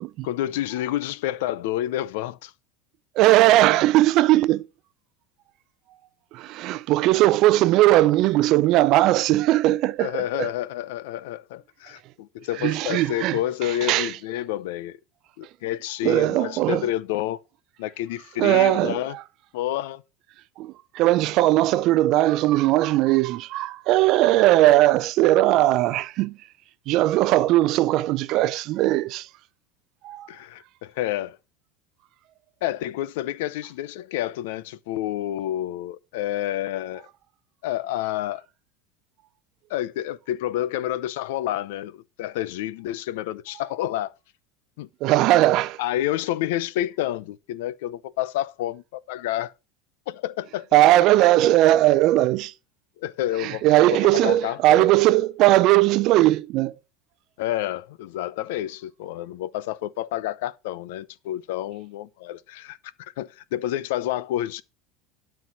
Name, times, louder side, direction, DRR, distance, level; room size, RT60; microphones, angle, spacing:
voice 1, 0.2-2.5 10.0-15.0 15.4-17.4 17.8-19.1 19.5-20.0 30.3-31.4 32.6-37.1 37.6-38.4 39.7-44.1 44.8-44.9 45.8-49.5 50.1-50.7 53.0-53.6 53.9-54.9 57.4-64.6, left 13 dB, 75° left, 0.7 m, -29 dB
voice 2, 3.2-4.7 6.3-10.5 12.6-14.2 16.0-16.9 18.4-19.2 20.6-26.4 26.9-29.3 30.0-30.3 45.0-45.8 50.7-52.5 53.4-56.8, right 16 dB, 45° right, 0.5 m, -19 dB
12.5 x 4.6 x 5.9 m
supercardioid pair, 165°, 0 cm